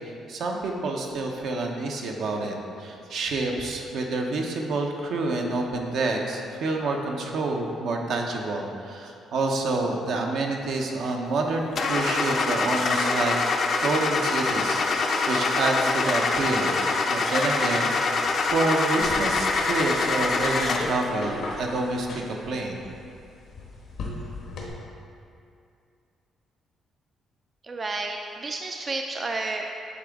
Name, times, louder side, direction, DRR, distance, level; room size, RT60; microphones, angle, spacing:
voice 1, 0.3-13.4 13.8-16.8 17.1-18.2 18.4-22.8, right 2 dB, 75° right, 1 dB, 0.8 m, -28 dB
Car / Engine starting, 11.8-21.0, left 3 dB, 60° left, 0.5 m, -25 dB
sound 1, 19.0-24.7, left 2 dB, 85° left, 1.1 m, -39 dB
voice 2, 27.6-29.6, right 3 dB, 35° right, 3 dB, 0.3 m, -31 dB
8.6 x 3.8 x 3.5 m, 2.5 s
cardioid pair, 90°, 0 cm